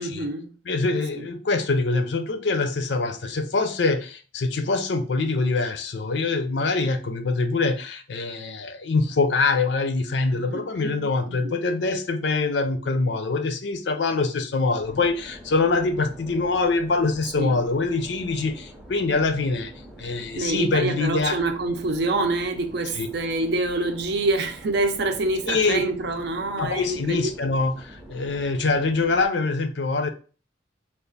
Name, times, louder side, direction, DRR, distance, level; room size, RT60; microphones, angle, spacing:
voice 1, 0.0-0.5 1.2-1.3 10.3-11.6 17.4-17.6 20.4-27.3, right 2 dB, 60° right, 0.6 m, -26 dB
voice 2, 0.7-19.7 20.0-21.4 23.0-23.1 25.5-25.9 26.5-30.1, left 3 dB, 65° left, 0.5 m, -24 dB
sound 1, 14.8-29.3, right 1 dB, 5° right, 0.5 m, -45 dB
3.4 x 2.4 x 4.0 m
head